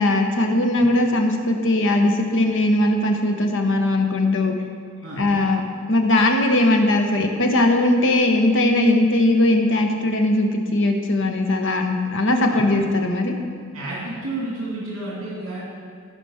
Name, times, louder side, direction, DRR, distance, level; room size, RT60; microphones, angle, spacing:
voice 1, 0.0-4.5 5.2-5.6 5.9-13.4, left 1 dB, 60° left, 3 dB, 1.1 m, -19 dB
voice 2, 13.7-15.6, right 2 dB, 65° right, -6 dB, 2.6 m, -30 dB
15.0 x 5.1 x 5.7 m, 2.1 s
head